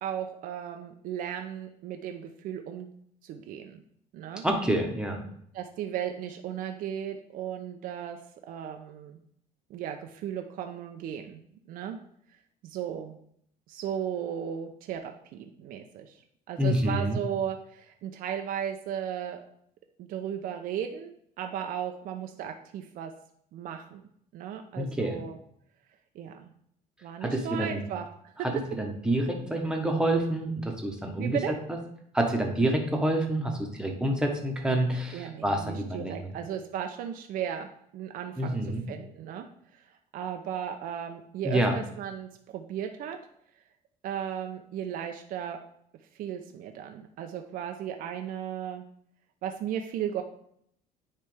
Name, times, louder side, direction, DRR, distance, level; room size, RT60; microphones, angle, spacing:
voice 1, 0.0-2.9 3.2-3.8 4.1-4.4 5.5-8.2 8.4-9.2 9.7-12.0 12.6-13.2 13.7-16.2 16.5-19.4 20.0-23.1 23.5-24.0 24.3-25.4 26.1-26.5 27.0-28.3 31.2-31.5 35.1-39.5 39.7-43.2 44.0-45.6 46.1-48.8 49.4-50.2, right 9 dB, 65° right, 4 dB, 0.6 m, -36 dB
voice 2, 4.4-5.2 16.6-17.2 24.8-25.2 27.2-27.8 28.4-31.4 32.1-36.3 38.4-38.8 41.4-41.7, right 1 dB, 5° right, 1 dB, 1.2 m, -27 dB
9.6 x 3.3 x 3.3 m, 0.68 s
cardioid pair, 120°, 16 cm